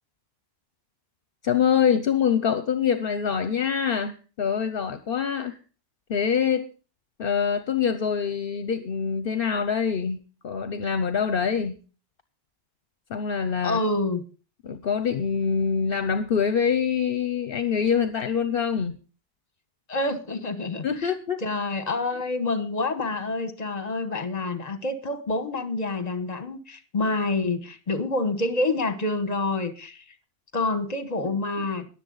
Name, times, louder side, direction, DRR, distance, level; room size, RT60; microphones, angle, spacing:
voice 1, 1.4-5.6 6.1-6.7 7.2-10.2 10.4-11.8 13.1-13.8 14.6-19.0 20.8-21.4, left 7 dB, 65° left, 11 dB, 1.0 m, -25 dB
voice 2, 13.6-14.2 19.9-21.1 21.4-30.0 30.5-31.9, left 2 dB, 40° left, 9 dB, 1.4 m, -27 dB
20.5 x 7.3 x 3.9 m, 0.37 s
omnidirectional pair, 1.0 m